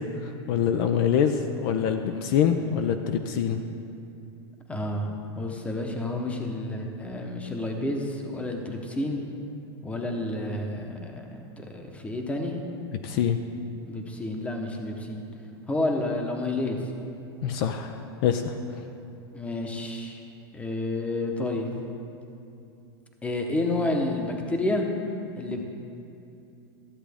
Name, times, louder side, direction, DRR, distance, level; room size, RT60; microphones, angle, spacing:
voice 1, 0.5-3.6 13.0-13.4 17.4-17.9 18.2-18.5, left 8 dB, 55° left, 7 dB, 0.5 m, -24 dB
voice 2, 4.7-9.2 9.8-12.6 13.9-15.2 15.7-16.8 19.3-20.2 20.5-21.7 23.2-24.8 25.4-25.6, left 2 dB, 10° left, 2 dB, 0.9 m, -30 dB
13.5 x 7.3 x 3.5 m, 2.7 s
supercardioid pair, 130°, 14 cm